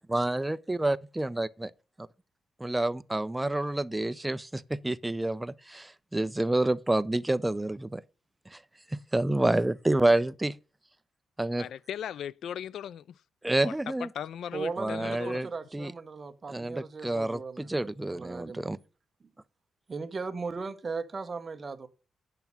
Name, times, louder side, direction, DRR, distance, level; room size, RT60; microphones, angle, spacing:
voice 1, 0.1-1.7 2.0-2.1 2.6-8.0 8.5-8.6 9.1-10.5 11.4-11.7 13.4-14.1 14.8-15.9 16.5-18.8, right 2 dB, 10° right, 0.4 m, -28 dB
voice 2, 11.6-13.2 13.6-13.7 14.0-15.5, left 9 dB, 80° left, 0.3 m, -38 dB
voice 3, 14.5-18.8 19.2-19.3 19.9-21.9, right 4 dB, 30° right, 0.9 m, -38 dB
9.2 x 5.9 x 5.4 m
cardioid pair, 130°, 0 cm